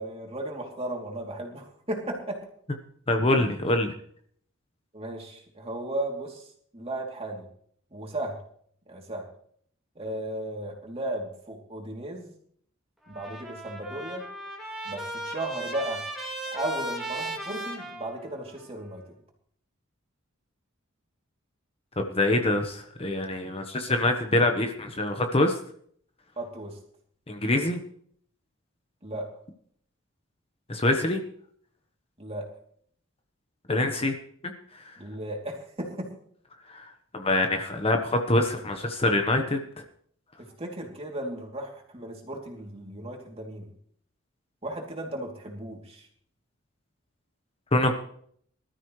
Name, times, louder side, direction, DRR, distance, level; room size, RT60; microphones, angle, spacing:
voice 1, 0.0-2.4 3.4-3.5 4.9-7.5 7.9-8.4 8.9-9.2 9.9-12.3 13.1-14.2 14.8-16.0 16.5-19.0 26.4-26.8 29.0-29.3 32.2-32.5 35.0-36.1 40.4-43.7 44.6-46.1, right 1 dB, 30° right, 0 dB, 3.0 m, -35 dB
voice 2, 3.1-3.9 22.0-25.6 27.3-27.8 30.7-31.2 33.7-34.1 36.7-36.9 37.1-39.6 47.7-47.9, left 2 dB, 30° left, 5 dB, 1.1 m, -25 dB
Trumpet, 13.0-18.7, right 1 dB, ahead, 2.8 m, -36 dB
20.5 x 13.0 x 3.2 m, 0.62 s
head